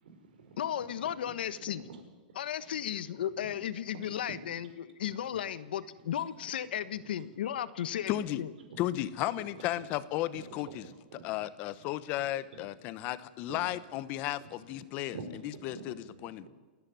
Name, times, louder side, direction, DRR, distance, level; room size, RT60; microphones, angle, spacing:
voice 1, 0.0-0.9 1.6-2.0 2.3-2.4 3.3-3.6 3.9-4.5 5.0-5.4 5.8-5.9 6.9-7.0 8.7-8.8 9.4-9.9 10.4-11.3 12.2-12.3 12.5-12.6 13.5-13.7 14.4-14.5 14.8-16.5, right 4 dB, 65° right, 6 dB, 5.3 m, -48 dB
voice 2, 0.6-1.8 2.3-8.1 8.4-8.5, left 10 dB, 70° left, 14 dB, 1.3 m, -35 dB
voice 3, 8.1-8.4 8.8-10.8 11.2-15.2 15.4-16.5, left 14 dB, 30° left, 16 dB, 0.9 m, -34 dB
28.5 x 11.0 x 9.5 m, 1.2 s
supercardioid pair, 170°, 5 cm